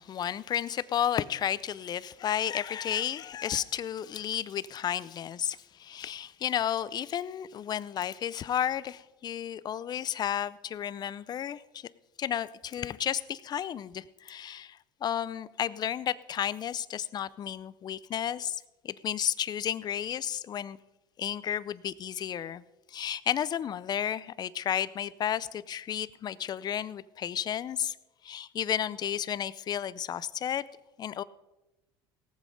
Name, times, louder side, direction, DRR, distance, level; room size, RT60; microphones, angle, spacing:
voice 1, 0.0-11.9 12.2-20.8 21.2-22.6 22.9-28.0 28.2-30.6 31.0-31.2, left 9 dB, 35° left, 18 dB, 0.6 m, -32 dB
18.0 x 7.7 x 5.1 m, 1.0 s
supercardioid pair, 105°, 11 cm